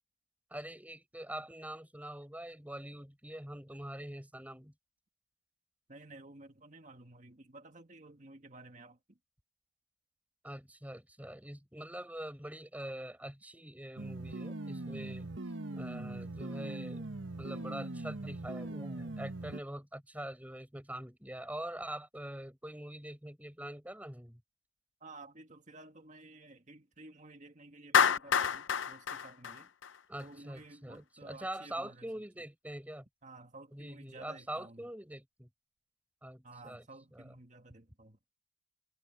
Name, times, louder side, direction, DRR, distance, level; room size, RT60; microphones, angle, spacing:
voice 1, 0.5-4.7 10.4-15.3 15.7-17.1 17.4-24.4 30.1-33.0 33.7-35.5 36.2-37.4, right 1 dB, 10° right, 6.8 m, -44 dB
voice 2, 5.9-9.0 25.0-29.7 30.2-32.1 33.2-34.8 36.4-38.2, right 2 dB, 40° right, 1.7 m, -53 dB
sound 1, 14.0-19.6, right 2 dB, 85° right, 1.3 m, -41 dB
Clapping, 27.9-30.2, left 7 dB, 85° left, 0.6 m, -28 dB
head